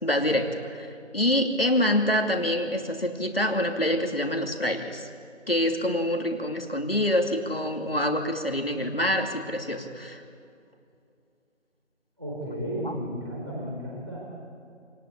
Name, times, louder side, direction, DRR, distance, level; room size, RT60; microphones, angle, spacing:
voice 1, 0.0-5.1 5.5-10.2 12.8-12.9, left 1 dB, 50° left, 4 dB, 2.6 m, -26 dB
voice 2, 12.2-14.2, equal, 20° right, -5 dB, 4.2 m, -33 dB
26.5 x 19.5 x 8.6 m, 2.5 s
figure-of-eight pair, 180°, 36 cm